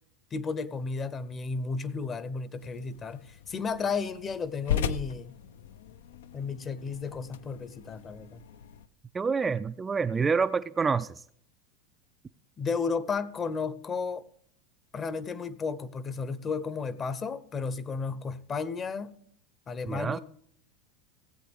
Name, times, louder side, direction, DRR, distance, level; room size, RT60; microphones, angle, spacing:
voice 1, 0.3-5.3 6.3-8.4 12.6-14.2 14.9-19.1 19.7-20.2, left 5 dB, 30° left, 0.8 m, -33 dB
sound 1, 2.6-8.9, left 8 dB, 75° left, 0.5 m, -37 dB
voice 2, 9.1-11.1 19.9-20.2, right 5 dB, 20° right, 0.3 m, -27 dB
16.5 x 7.9 x 3.5 m
hypercardioid pair, 95°, 0 cm